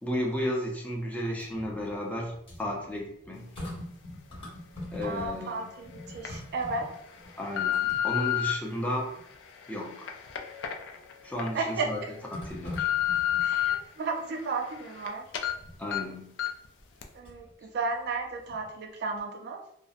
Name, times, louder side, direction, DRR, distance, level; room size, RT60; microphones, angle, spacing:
voice 1, 0.0-3.5 4.9-5.7 7.4-9.1 9.7-10.1 11.2-12.0 12.4-12.9 13.5-13.6 15.8-16.3, equal, 10° left, -2 dB, 0.4 m, -33 dB
sound 1, 1.2-5.5 5.8-8.6 9.1-9.2 10.9-11.4 12.3-13.8 15.5-15.9 16.8-17.5 17.9-18.9 19.2-19.3, left 1 dB, 30° left, 0.9 m, -43 dB
voice 2, 5.0-6.9 11.5-12.1 13.4-15.3 17.1-19.6, right 3 dB, 60° right, 3 dB, 0.3 m, -33 dB
sound 2, 5.2-5.3 6.0-6.3 6.9-8.5 9.2-11.5 11.9-12.0 12.4-13.7 14.2-15.1 15.3-15.5 15.9-16.0 16.4-16.7 17.0-17.1, left 12 dB, 75° left, 0.3 m, -30 dB
2.5 x 2.0 x 2.4 m, 0.72 s
head